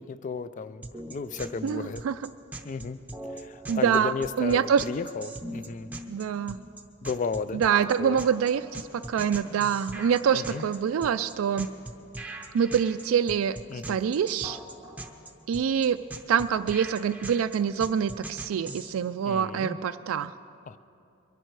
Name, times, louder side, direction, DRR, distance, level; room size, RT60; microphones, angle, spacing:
voice 1, 0.0-2.0 2.6-3.0 3.3-5.9 7.0-7.6 8.0-8.2 10.3-10.6 13.7-14.0 19.3-19.8 20.7-20.8, left 4 dB, 40° left, 15 dB, 0.3 m, -34 dB
sound 1, 0.8-18.9, right 2 dB, 10° right, 0.7 m, -41 dB
voice 2, 1.6-2.3 3.7-4.8 6.1-6.6 7.5-11.7 12.5-14.6 15.5-16.0 16.3-20.3, right 7 dB, 85° right, 9 dB, 0.3 m, -26 dB
23.0 x 11.0 x 4.7 m, 2.6 s
head